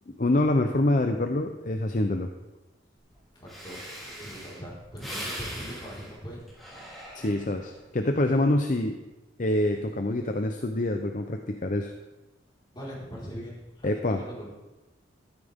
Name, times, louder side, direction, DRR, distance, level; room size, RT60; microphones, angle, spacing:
voice 1, 0.1-2.3 7.1-9.0 9.4-11.9 13.8-14.2, left 1 dB, 45° left, 5 dB, 0.7 m, -26 dB
Breathing, 3.1-3.2 3.5-7.7 8.2-8.5, equal, ahead, 3.4 m, -40 dB
voice 2, 3.3-6.5 6.7-6.8 12.7-14.5, equal, 25° left, -7 dB, 4.6 m, -41 dB
13.5 x 12.5 x 3.6 m, 1.1 s
head